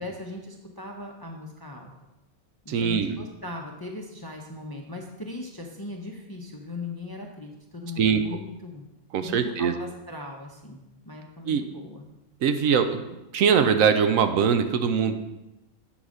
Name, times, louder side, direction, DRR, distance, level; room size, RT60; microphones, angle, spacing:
voice 1, 0.0-1.9 2.6-8.9 9.2-12.1, left 2 dB, 25° left, 1 dB, 0.5 m, -39 dB
voice 2, 2.7-3.2 8.0-8.4 9.1-9.8 11.4-11.6 12.4-13.0 13.3-15.2, right 7 dB, 80° right, 8 dB, 1.1 m, -22 dB
8.7 x 4.0 x 6.3 m, 0.98 s
omnidirectional pair, 1.4 m